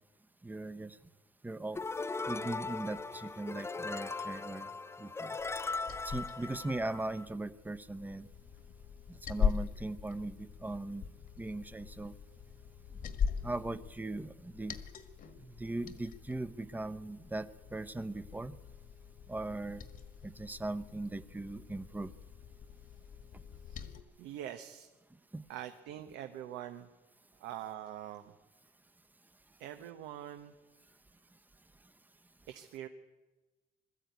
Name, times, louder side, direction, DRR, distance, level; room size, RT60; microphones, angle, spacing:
voice 1, 0.4-1.0 1.4-1.8 2.3-4.7 5.0-5.4 6.0-8.3 9.1-11.1 11.4-12.1 13.4-14.8 15.4-18.5 19.3-19.8 20.2-22.1 25.3-25.4, right 2 dB, 10° right, 11 dB, 0.8 m, -39 dB
sound 1, 1.8-7.3, left 3 dB, 15° left, 0.6 m, -39 dB
Liquid, 5.4-24.0, left 7 dB, 55° left, 1.7 m, -41 dB
voice 2, 24.2-24.9 25.5-26.9 27.4-28.3 29.6-30.5 32.5-32.9, right 11 dB, 90° right, 7 dB, 1.1 m, -44 dB
21.5 x 13.5 x 9.4 m, 1.2 s
cardioid pair, 110°, 17 cm